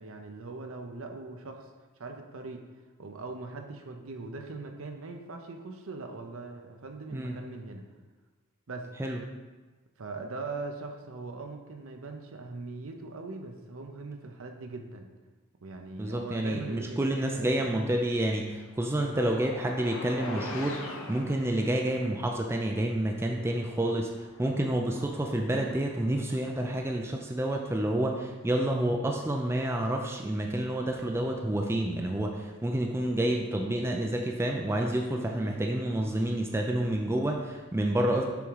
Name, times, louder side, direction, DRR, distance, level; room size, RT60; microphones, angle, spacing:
voice 1, 0.0-1.7 2.0-2.7 3.0-7.8 8.7-8.9 10.0-15.1 15.6-17.7 19.0-19.3 35.3-35.6, right 3 dB, 65° right, 4 dB, 0.7 m, -41 dB
voice 2, 16.0-38.3, right 1 dB, 10° right, 1 dB, 0.4 m, -29 dB
sound 1, 18.4-22.2 22.9-23.0 23.5-26.8, left 1 dB, 65° left, 0.8 m, -44 dB
7.0 x 3.6 x 4.7 m, 1.3 s
head